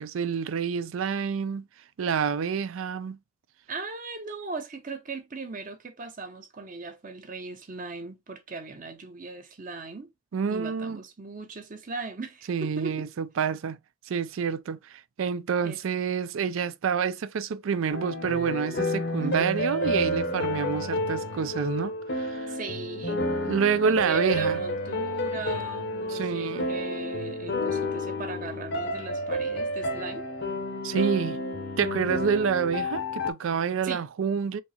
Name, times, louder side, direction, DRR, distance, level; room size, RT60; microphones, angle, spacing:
voice 1, 0.0-1.6 2.0-3.2 10.3-11.0 12.5-13.8 14.1-22.5 23.5-24.6 26.1-26.7 30.8-31.4 31.8-34.6, right 6 dB, 70° right, 0.4 m, -28 dB
voice 2, 3.7-10.1 10.5-13.1 15.6-15.8 19.2-19.6 22.5-23.3 23.8-30.3 33.8-34.0, right 3 dB, 40° right, 0.8 m, -38 dB
sound 1, 17.9-33.3, left 1 dB, 50° left, 0.7 m, -30 dB
4.5 x 2.8 x 2.8 m
head